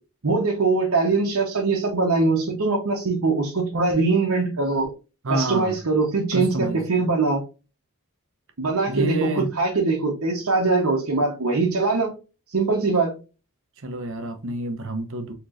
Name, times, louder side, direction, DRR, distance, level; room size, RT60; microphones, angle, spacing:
voice 1, 0.2-4.9 5.3-7.4 8.6-12.1 12.5-13.2, right 3 dB, 75° right, 1.0 m, -22 dB
voice 2, 5.2-5.8 6.3-6.8 8.9-9.5 13.8-15.3, right 1 dB, 60° right, 0.8 m, -28 dB
4.3 x 3.1 x 2.5 m
head